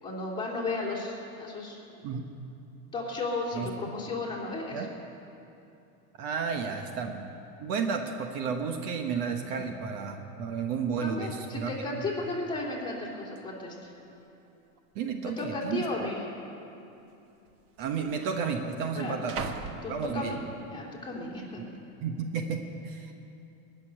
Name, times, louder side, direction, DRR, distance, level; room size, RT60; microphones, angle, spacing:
voice 1, 0.0-1.8 2.9-4.9 9.4-9.7 11.0-13.9 15.2-16.2 18.9-19.2 19.8-20.4 20.7-21.6, left 2 dB, 10° left, -4 dB, 2.9 m, -34 dB
voice 2, 6.2-7.3 7.6-11.7 14.9-15.9 17.8-19.5 19.9-20.3 22.0-23.1, right 6 dB, 55° right, 5 dB, 1.1 m, -32 dB
sound 1, 11.9-12.0 12.2-12.6 13.4-13.5 14.2-14.7 15.0-15.1 16.0-16.1 17.1-17.2 17.5-20.7 21.2-21.6, right 5 dB, 35° right, 1.0 m, -42 dB
19.0 x 6.9 x 10.0 m, 2.8 s
supercardioid pair, 145°, 42 cm